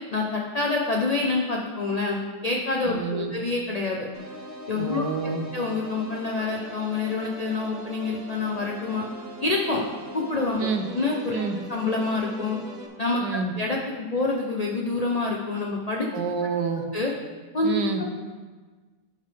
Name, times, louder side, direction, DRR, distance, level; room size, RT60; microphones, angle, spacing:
voice 1, 0.1-4.1 4.7-5.0 5.5-9.0 9.4-9.8 10.1-11.4 11.7-12.6 13.0-13.2 13.6-16.1 16.9-17.1 17.5-17.7 18.0-18.1, left 3 dB, 35° left, -1 dB, 0.6 m, -27 dB
voice 2, 2.8-3.3 4.7-5.5 10.6-10.8 11.3-11.6 13.2-13.5 16.1-16.9 17.6-18.0, right 5 dB, 80° right, 4 dB, 1.6 m, -28 dB
sound 1, 4.1-12.9, equal, 40° right, 2.0 m, -40 dB
12.0 x 7.9 x 3.4 m, 1.4 s
omnidirectional pair, 1.8 m